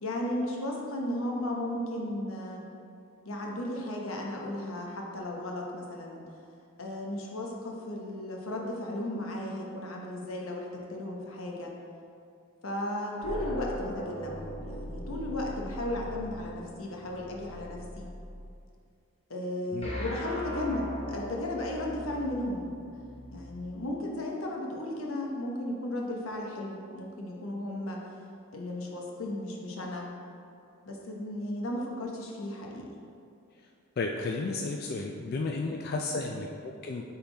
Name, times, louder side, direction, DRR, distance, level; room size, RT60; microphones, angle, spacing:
voice 1, 0.0-2.6 3.2-6.2 6.8-11.7 12.6-18.1 19.3-22.7 23.3-28.0 28.5-30.1 30.8-32.9 35.2-35.3 35.7-36.2, left 1 dB, 80° left, -1 dB, 1.0 m, -35 dB
sound 1, 13.2-18.5 19.8-23.7, equal, 30° left, 1.0 m, -40 dB
voice 2, 34.0-37.0, left 3 dB, 50° left, 1 dB, 0.3 m, -33 dB
8.3 x 3.8 x 3.4 m, 2.4 s
head